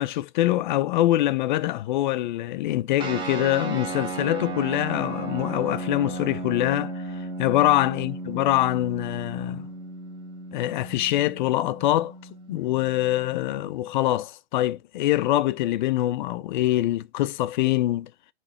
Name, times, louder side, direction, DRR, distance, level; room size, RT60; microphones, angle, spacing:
voice 1, 0.0-9.7 10.5-12.1 12.5-18.1, left 15 dB, 45° left, 0.5 m, -24 dB
sound 1, 3.0-13.9, right 2 dB, 15° right, 2.0 m, -35 dB
8.7 x 3.2 x 4.1 m
hypercardioid pair, 115°, 33 cm